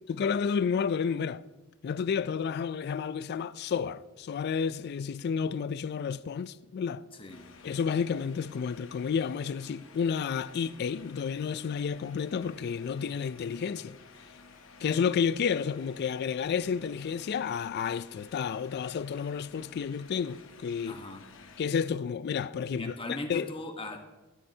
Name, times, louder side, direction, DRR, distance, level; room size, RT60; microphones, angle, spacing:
voice 1, 0.1-1.4 1.8-7.0 7.6-14.0 14.8-21.0 21.6-22.9 23.3-23.5, left 6 dB, 50° left, 0.3 m, -31 dB
voice 2, 7.1-7.5 20.9-21.3 22.7-24.0, left 2 dB, 25° left, 1.1 m, -39 dB
sound 1, 7.3-21.6, left 4 dB, 65° left, 1.0 m, -53 dB
13.0 x 12.0 x 2.8 m
head